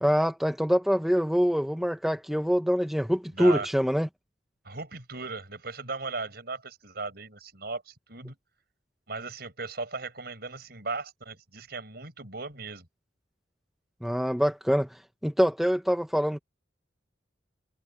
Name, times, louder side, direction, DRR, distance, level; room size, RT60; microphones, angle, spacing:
voice 1, 0.0-4.1 14.0-14.9 15.2-16.4, equal, ahead, 1.0 m, -25 dB
voice 2, 3.3-3.7 4.6-8.4 9.1-12.9, right 3 dB, 55° right, 6.1 m, -37 dB
head